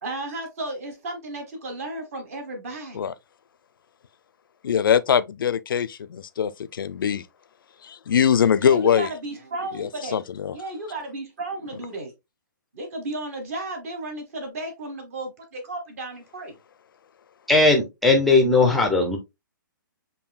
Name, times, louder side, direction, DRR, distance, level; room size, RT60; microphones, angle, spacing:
voice 1, 0.0-3.1 8.6-10.2 10.5-12.1 12.7-16.6, right 2 dB, 45° right, 1.3 m, -34 dB
voice 2, 4.6-7.2 7.8-9.1 9.7-10.6, left 8 dB, 80° left, 0.5 m, -22 dB
voice 3, 17.5-19.2, left 3 dB, ahead, 0.5 m, -18 dB
7.0 x 2.7 x 2.2 m
hypercardioid pair, 165°, 11 cm